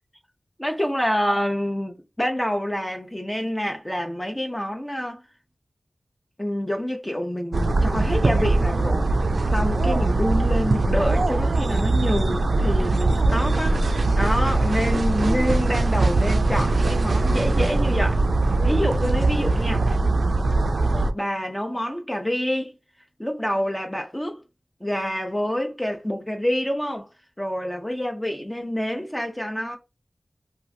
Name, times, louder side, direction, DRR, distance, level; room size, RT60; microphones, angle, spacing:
voice 1, 0.6-5.2 6.4-9.1 9.5-18.2 18.6-19.8 21.1-22.7 23.2-24.4 24.8-27.1 27.4-29.8, equal, 15° left, 0.5 m, -27 dB
sound 1, 7.5-21.1, right 2 dB, 80° right, 0.3 m, -21 dB
3.0 x 2.4 x 2.6 m
wide cardioid pair, 45°, 0 cm